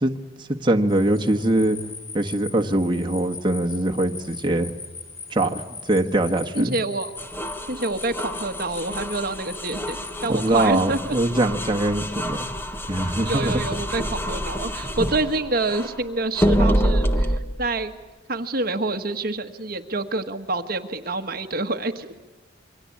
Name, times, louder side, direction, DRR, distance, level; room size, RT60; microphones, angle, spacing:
voice 1, 0.4-1.8 2.1-4.8 5.3-6.8 10.3-12.4 12.8-13.6, right 1 dB, 25° right, 3 dB, 1.5 m, -22 dB
sound 1, 0.9-11.2, left 5 dB, 30° left, 3.8 m, -40 dB
voice 2, 6.5-7.1 7.7-11.2 13.3-17.9 18.3-22.2, right 2 dB, 45° right, 7 dB, 1.4 m, -27 dB
sound 2, 7.2-16.0 16.4-17.4, equal, 10° left, 1.5 m, -27 dB
28.0 x 24.5 x 8.6 m, 1.2 s
head